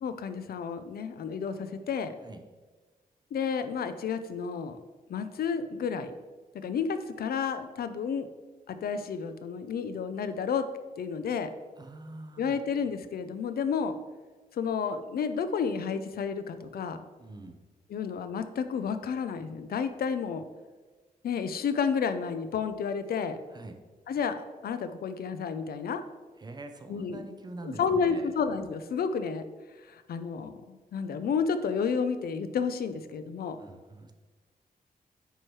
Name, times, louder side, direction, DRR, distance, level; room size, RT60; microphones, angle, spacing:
voice 1, 0.0-2.1 3.3-4.8 5.1-6.1 6.5-8.3 8.7-10.7 11.0-11.5 12.4-13.9 14.5-17.0 17.9-20.4 21.2-23.4 24.1-24.4 24.6-26.0 26.9-27.2 27.6-29.4 29.9-33.6, left 6 dB, 75° left, 10 dB, 0.5 m, -31 dB
voice 2, 11.8-12.6 17.2-17.6 23.5-23.8 26.4-28.3 33.6-34.1, right 2 dB, 25° right, 6 dB, 0.5 m, -44 dB
9.0 x 3.1 x 4.6 m, 1.3 s
wide cardioid pair, 175°, 16 cm